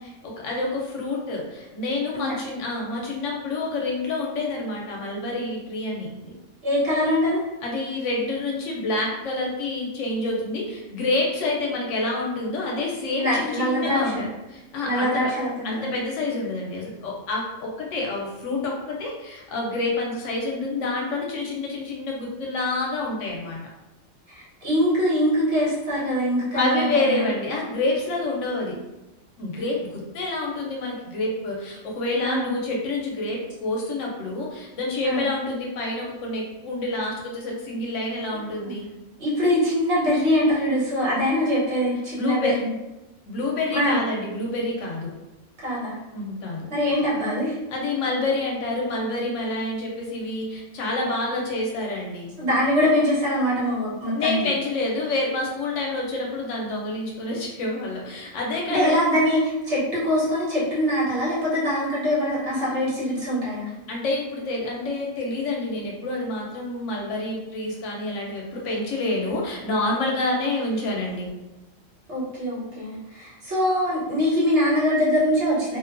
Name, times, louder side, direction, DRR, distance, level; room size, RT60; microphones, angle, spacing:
voice 1, 0.2-6.3 7.6-15.3 15.6-23.6 26.5-28.8 29.4-38.9 42.2-42.6 43.2-45.1 46.1-46.6 47.7-52.3 54.1-59.0 63.9-71.3, left 2 dB, 70° left, -2 dB, 0.9 m, -28 dB
voice 2, 6.6-7.4 13.2-14.2 14.8-15.9 24.3-27.3 32.2-32.5 35.0-35.2 39.2-42.7 43.7-44.0 45.6-46.0 46.7-47.6 52.4-54.4 58.7-63.7 72.1-75.8, equal, 60° right, -8 dB, 1.4 m, -23 dB
2.6 x 2.2 x 2.4 m, 1.0 s
omnidirectional pair, 1.4 m